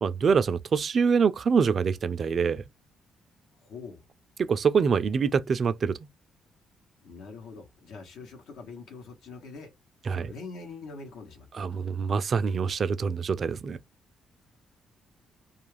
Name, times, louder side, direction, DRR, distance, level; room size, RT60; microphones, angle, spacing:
voice 1, 0.0-2.6 4.4-6.0 10.1-10.3 11.6-13.8, right 6 dB, 50° right, 0.3 m, -25 dB
voice 2, 3.6-4.0 7.0-9.7 10.1-11.9, left 4 dB, 85° left, 0.8 m, -44 dB
2.4 x 2.3 x 3.1 m
cardioid pair, 90°, 0 cm